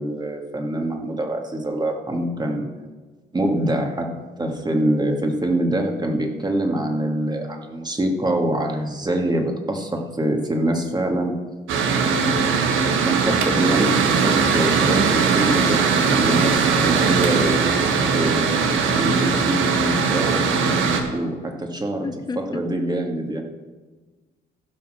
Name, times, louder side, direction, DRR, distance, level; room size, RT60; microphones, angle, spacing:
voice 1, 0.0-2.7 3.3-4.1 4.4-11.4 13.0-17.9 18.1-18.5 18.9-22.1 22.4-23.4, right 1 dB, 20° right, 2 dB, 2.0 m, -24 dB
Mechanical fan, 11.7-21.0, right 5 dB, 85° right, 1.5 m, -20 dB
voice 2, 12.1-12.4 21.8-22.6, left 4 dB, 20° left, 9 dB, 0.6 m, -32 dB
15.5 x 5.7 x 6.5 m, 1.3 s
cardioid pair, 90°, 20 cm